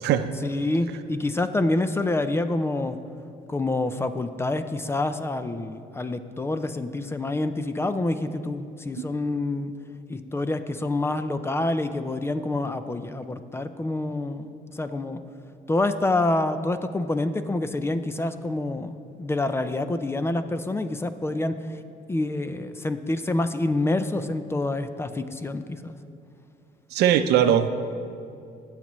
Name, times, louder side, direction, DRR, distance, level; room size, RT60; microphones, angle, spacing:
voice 1, 0.4-3.0 3.5-9.7 10.1-15.2 15.7-21.8 22.1-26.0, left 2 dB, 15° left, 10 dB, 0.4 m, -27 dB
voice 2, 26.9-27.7, right 10 dB, 75° right, 9 dB, 0.6 m, -20 dB
19.5 x 7.3 x 3.1 m, 2.6 s
cardioid pair, 110°, 17 cm